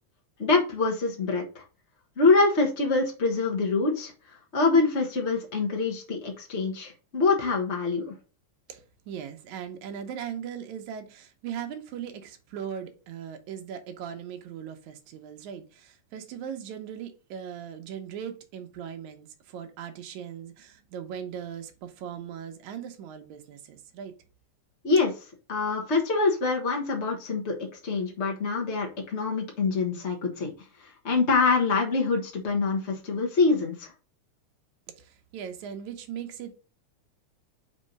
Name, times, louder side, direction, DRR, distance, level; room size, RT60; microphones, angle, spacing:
voice 1, 0.4-1.6 2.2-4.1 4.5-8.1 24.8-25.1 25.5-27.6 27.8-30.5 30.8-33.9, left 4 dB, 50° left, 0.8 m, -25 dB
voice 2, 8.7-24.1 35.0-36.6, right 8 dB, 75° right, 2.4 m, -39 dB
5.5 x 4.4 x 5.3 m
omnidirectional pair, 3.5 m